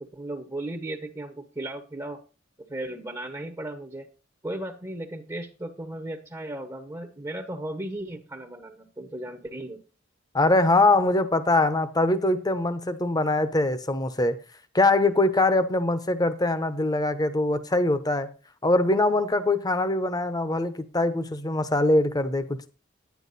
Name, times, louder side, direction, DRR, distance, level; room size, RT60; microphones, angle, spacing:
voice 1, 0.0-2.2 2.6-4.1 4.4-9.8, right 1 dB, 15° right, 0.9 m, -36 dB
voice 2, 10.3-14.4 14.7-18.3 18.6-22.7, left 2 dB, 20° left, 0.9 m, -23 dB
10.0 x 9.4 x 4.1 m
head